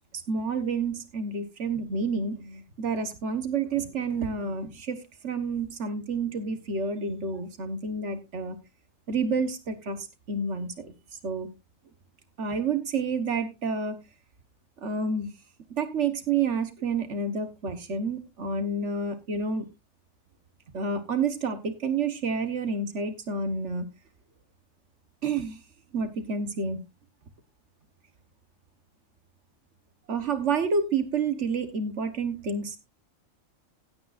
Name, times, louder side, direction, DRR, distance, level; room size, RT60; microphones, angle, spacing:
voice 1, 0.3-8.6 9.1-10.9 11.2-11.5 12.4-14.0 14.8-15.3 15.7-19.7 20.7-23.8 25.2-25.6 25.9-26.8 30.1-32.8, right 4 dB, 60° right, 1.6 m, -29 dB
16.0 x 8.8 x 2.5 m
omnidirectional pair, 1.4 m